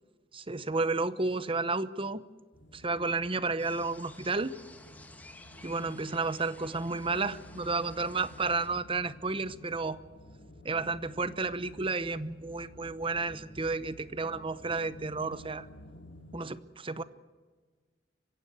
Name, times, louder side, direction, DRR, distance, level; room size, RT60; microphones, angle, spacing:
voice 1, 0.3-2.2 2.7-4.5 5.6-10.0 10.6-15.7 16.3-17.0, right 3 dB, 30° right, 15 dB, 0.9 m, -32 dB
sound 1, 2.5-16.4, left 1 dB, 80° left, 2.7 m, -52 dB
sound 2, 3.6-8.7, left 2 dB, 10° left, 2.1 m, -53 dB
25.0 x 16.0 x 8.3 m, 1.4 s
head